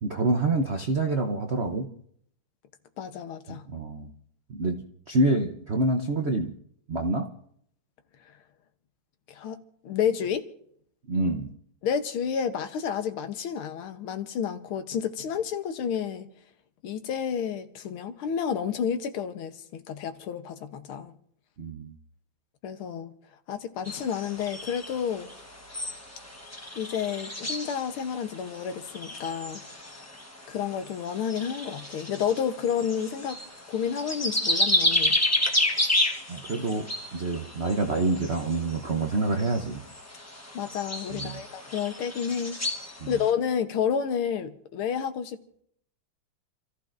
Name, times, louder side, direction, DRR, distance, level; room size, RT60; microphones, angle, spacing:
voice 1, 0.0-1.9 3.7-4.1 4.5-4.8 5.1-6.5 6.9-7.3 11.1-11.5 21.6-21.9 36.3-36.9 37.1-39.8 41.1-41.4 43.0-43.1, right 2 dB, 60° right, 0.7 m, -27 dB
voice 2, 3.0-3.6 9.3-10.5 11.8-16.3 16.8-21.1 22.6-23.1 23.5-25.3 26.8-29.6 30.5-33.4 33.7-35.2 40.5-42.6 43.1-45.4, left 7 dB, 75° left, 1.8 m, -30 dB
sound 1, 23.8-43.3, left 1 dB, 15° left, 0.7 m, -31 dB
29.5 x 14.5 x 2.6 m
omnidirectional pair, 2.4 m